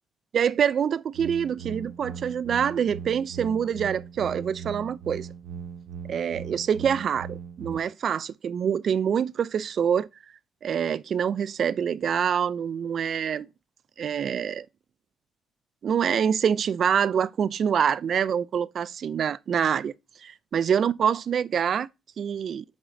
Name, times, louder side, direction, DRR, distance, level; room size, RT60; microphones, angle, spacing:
voice 1, 0.3-5.3 6.1-10.1 10.6-13.5 14.0-14.7 15.8-19.9 20.2-21.9 22.2-22.6, right 8 dB, 55° right, 0.3 m, -25 dB
sound 1, 1.1-7.8, right 7 dB, 80° right, 0.7 m, -39 dB
5.2 x 3.6 x 5.0 m
cardioid pair, 100°, 0 cm